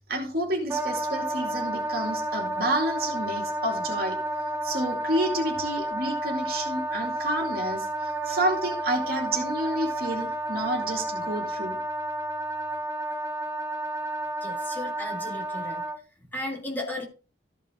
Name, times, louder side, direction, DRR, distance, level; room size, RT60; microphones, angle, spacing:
voice 1, 0.1-4.2 4.6-11.8, right 1 dB, 50° right, 2 dB, 2.5 m, -29 dB
Wind instrument woodwind instrument, 0.7-16.0, right 1 dB, 15° right, 1.0 m, -31 dB
voice 2, 14.4-15.8 16.3-17.1, left 1 dB, 10° left, 0 dB, 1.9 m, -35 dB
13.5 x 5.4 x 3.7 m, 0.33 s
head